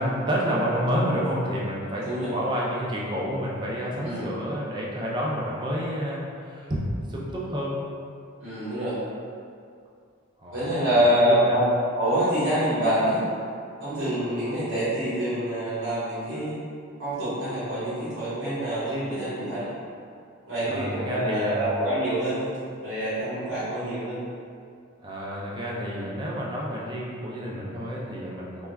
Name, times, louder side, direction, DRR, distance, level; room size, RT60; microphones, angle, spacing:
voice 1, 0.0-7.8 10.4-11.6 20.7-21.8 25.0-28.7, equal, 20° right, -4 dB, 0.3 m, -29 dB
voice 2, 8.4-9.0 10.5-13.2 13.8-16.5 17.0-19.7 20.5-22.4 22.8-24.2, equal, 80° right, -13 dB, 1.1 m, -26 dB
3.3 x 2.2 x 2.2 m, 2.3 s
head